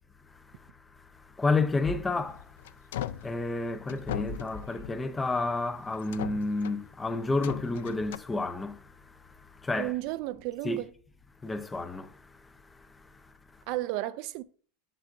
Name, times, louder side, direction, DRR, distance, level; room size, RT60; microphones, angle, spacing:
voice 1, 0.2-9.9 10.6-10.8 11.4-13.6, left 3 dB, 15° left, 0.6 m, -32 dB
sound 1, 2.3-3.3 3.9-5.2 5.9-6.9 7.4-8.2, left 11 dB, 80° left, 0.3 m, -38 dB
voice 2, 9.8-10.9 13.7-14.4, right 16 dB, 60° right, 0.3 m, -33 dB
7.6 x 6.5 x 2.5 m
hypercardioid pair, 110°, 0 cm